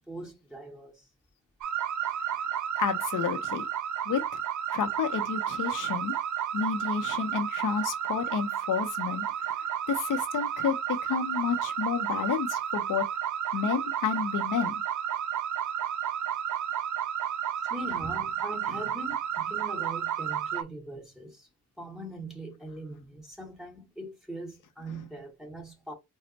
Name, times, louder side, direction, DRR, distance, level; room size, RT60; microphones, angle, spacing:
voice 1, 0.1-1.1 17.7-21.5 21.8-25.9, right 1 dB, ahead, 1.5 m, -41 dB
sound 1, 1.6-20.6, right 9 dB, 70° right, 0.6 m, -32 dB
voice 2, 2.8-3.7 4.1-4.2 4.7-6.1 6.5-9.5 9.9-13.1 13.5-14.8, left 7 dB, 80° left, 0.6 m, -30 dB
4.2 x 2.1 x 3.8 m
wide cardioid pair, 135°, 31 cm